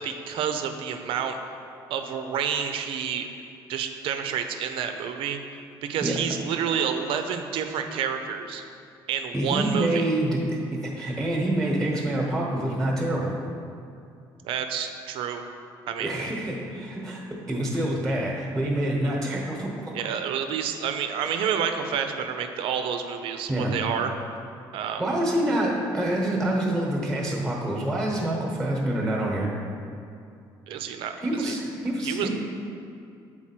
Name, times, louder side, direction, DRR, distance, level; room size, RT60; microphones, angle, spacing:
voice 1, 0.0-1.4 1.9-3.3 3.7-5.4 5.8-8.6 9.1-10.0 14.4-15.4 15.9-16.2 19.9-24.1 24.7-25.0 30.7-31.6 32.0-32.3, right 8 dB, 80° right, 7 dB, 0.5 m, -29 dB
voice 2, 9.3-13.3 16.0-17.2 17.5-19.9 23.5-23.7 25.0-29.5 31.2-32.3, right 1 dB, 5° right, -2 dB, 1.0 m, -26 dB
7.4 x 4.1 x 4.4 m, 2.4 s
cardioid pair, 130°, 9 cm